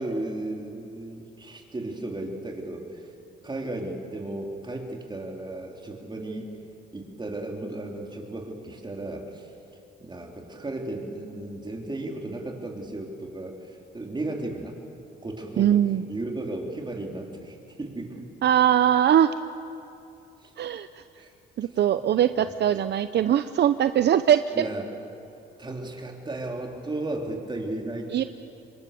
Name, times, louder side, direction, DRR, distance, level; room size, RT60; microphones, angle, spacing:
voice 1, 0.0-3.1 3.4-6.5 6.9-9.5 10.0-14.8 15.2-18.3 20.4-20.5 21.2-21.3 21.6-22.1 22.7-22.8 24.5-24.9 25.6-28.3, right 2 dB, 20° right, 1 dB, 3.9 m, -35 dB
voice 2, 15.6-16.0 18.4-19.3 20.6-20.9 21.6-24.4 28.1-28.2, right 10 dB, 60° right, 11 dB, 0.7 m, -21 dB
26.5 x 23.0 x 7.0 m, 2.7 s
cardioid pair, 90°, 20 cm